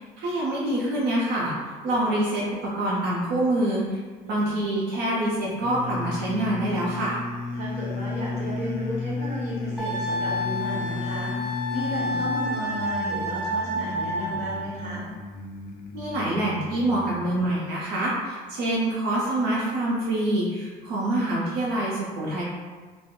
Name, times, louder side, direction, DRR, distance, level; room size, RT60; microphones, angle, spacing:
voice 1, 0.0-1.5 1.8-4.0 4.3-7.2 15.9-22.4, right 1 dB, 85° right, -6 dB, 0.6 m, -26 dB
sound 1, 5.6-17.5, left 3 dB, 60° left, 0.4 m, -34 dB
voice 2, 7.5-15.1, equal, 40° right, -6 dB, 1.1 m, -34 dB
Wind instrument woodwind instrument, 9.8-14.6, equal, 5° right, 0.5 m, -29 dB
2.3 x 2.0 x 3.5 m, 1.4 s
cardioid pair, 110°, 17 cm